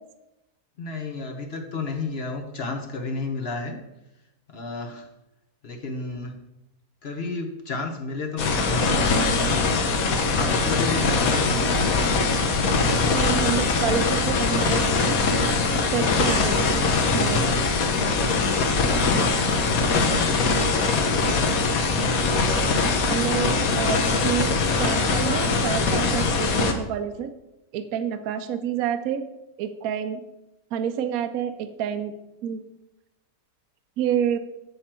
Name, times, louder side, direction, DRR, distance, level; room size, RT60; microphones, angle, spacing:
voice 1, 0.8-3.8 4.5-5.1 5.6-6.3 7.0-9.3 10.3-11.4 19.9-21.3, left 3 dB, 45° left, 3 dB, 1.0 m, -32 dB
sound 1, 8.4-26.7, left 3 dB, 65° left, 1.3 m, -22 dB
voice 2, 11.5-11.9 13.1-15.0 15.3-15.5 15.9-16.9 17.1-17.5 23.1-27.3 27.7-29.2 29.6-30.2 30.7-32.1 32.4-32.6 34.0-34.4, right 9 dB, 70° right, 9 dB, 1.0 m, -28 dB
7.5 x 6.8 x 4.3 m, 0.94 s
omnidirectional pair, 1.6 m